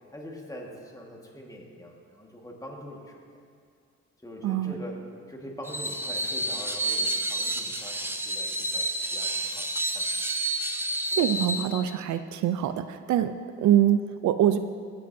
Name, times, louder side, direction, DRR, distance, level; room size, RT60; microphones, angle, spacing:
voice 1, 0.1-3.2 4.2-5.0 5.3-10.1, equal, 10° left, 0 dB, 1.6 m, -43 dB
voice 2, 4.4-4.7 11.1-13.3 13.6-14.6, right 11 dB, 70° right, 10 dB, 0.5 m, -24 dB
Screech, 5.6-11.7, right 1 dB, 5° right, 0.7 m, -29 dB
17.0 x 7.8 x 2.7 m, 2.2 s
cardioid pair, 90°, 30 cm